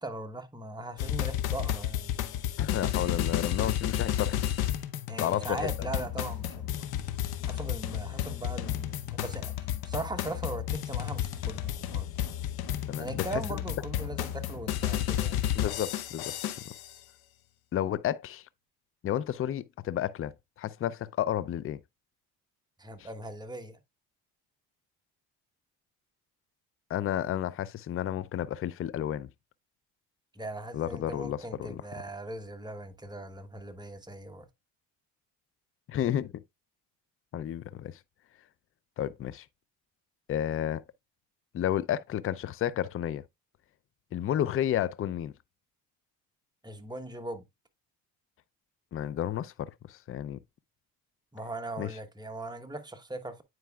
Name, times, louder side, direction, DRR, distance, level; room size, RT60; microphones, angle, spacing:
voice 1, 0.0-2.4 5.1-6.9 7.4-12.1 13.0-15.4 22.8-23.8 30.3-34.5 46.6-47.4 51.3-53.4, right 2 dB, 10° right, 1.1 m, -39 dB
sound 1, 1.0-16.9, left 11 dB, 65° left, 0.9 m, -32 dB
voice 2, 2.6-4.4 5.2-5.7 12.9-13.2 15.5-16.3 17.7-18.4 19.0-20.3 20.6-21.8 26.9-29.3 30.7-31.8 35.9-36.4 37.3-38.0 39.0-39.5 40.3-40.8 41.5-43.2 44.1-45.3 48.9-50.4 51.8-52.0, left 11 dB, 35° left, 0.4 m, -31 dB
9.2 x 4.6 x 2.3 m
supercardioid pair, 70°, 40 cm